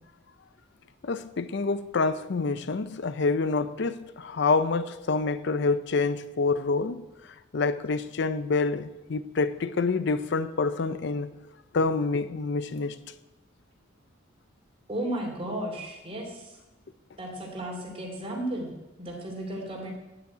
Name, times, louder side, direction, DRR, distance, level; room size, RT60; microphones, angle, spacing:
voice 1, 1.0-7.0 7.5-11.3 11.7-13.0, left 4 dB, 60° left, 0.5 m, -27 dB
voice 2, 14.9-16.5 17.2-18.7 19.0-20.0, right 1 dB, 30° right, 2.7 m, -34 dB
9.1 x 8.3 x 8.9 m
head